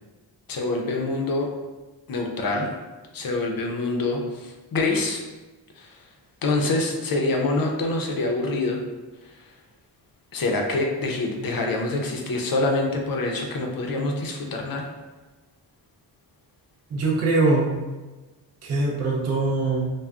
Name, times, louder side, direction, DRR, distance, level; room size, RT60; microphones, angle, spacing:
voice 1, 0.5-1.5 2.1-2.7 3.1-5.2 5.8-5.9 6.4-8.8 10.3-14.9, left 2 dB, 50° left, 1 dB, 0.5 m, -25 dB
voice 2, 16.9-17.8 18.6-19.9, right 3 dB, 35° right, -2 dB, 0.5 m, -22 dB
2.2 x 2.1 x 3.5 m, 1.2 s
wide cardioid pair, 160°, 45 cm